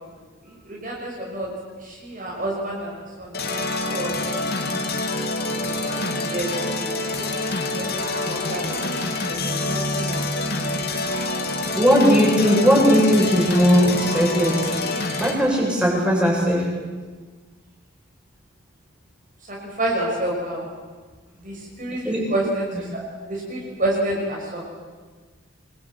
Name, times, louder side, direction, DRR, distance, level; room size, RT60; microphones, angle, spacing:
voice 1, 0.4-1.5 1.8-3.5 3.8-4.5 5.5-6.5 6.7-10.7 19.5-20.6 21.4-23.0 23.3-24.6, right 1 dB, 40° right, -3 dB, 6.0 m, -30 dB
sound 1, 3.3-15.3, left 2 dB, 45° left, 3.1 m, -26 dB
voice 2, 11.7-14.7 15.2-16.7 22.0-22.3, equal, 5° right, -4 dB, 8.0 m, -18 dB
27.0 x 22.0 x 9.1 m, 1.4 s
head